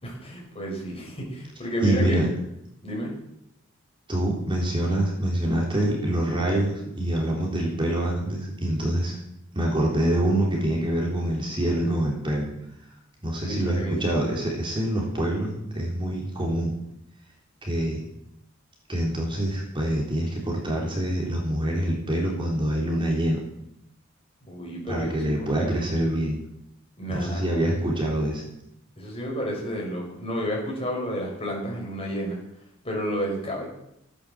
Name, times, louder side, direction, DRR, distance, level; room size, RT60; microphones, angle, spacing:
voice 1, 0.0-2.2 2.8-3.1 13.4-14.0 24.4-25.5 27.0-27.5 29.0-32.4 32.8-33.6, equal, 30° left, -2 dB, 6.3 m, -31 dB
voice 2, 1.8-2.3 4.1-9.2 9.5-12.5 13.2-16.7 17.6-18.0 18.9-23.4 24.9-26.4 27.1-28.4, right 1 dB, 25° right, -2 dB, 3.4 m, -25 dB
16.0 x 9.6 x 7.6 m, 0.80 s
head